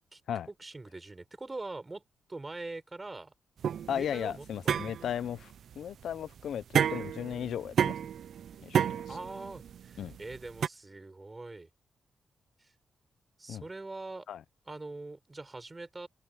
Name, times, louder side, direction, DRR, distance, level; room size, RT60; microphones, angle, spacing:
voice 1, 0.5-2.0 2.3-3.3 3.9-5.1 9.1-11.7 12.6-12.7 13.4-14.3 14.7-16.1, right 2 dB, 25° right, 5.2 m, -43 dB
sound 1, 3.6-10.7, right 8 dB, 75° right, 0.5 m, -31 dB
voice 2, 3.9-8.0 8.6-8.8 10.0-10.2 13.5-13.6 14.3-14.4, left 9 dB, 80° left, 0.7 m, -36 dB
cardioid pair, 90°, 0 cm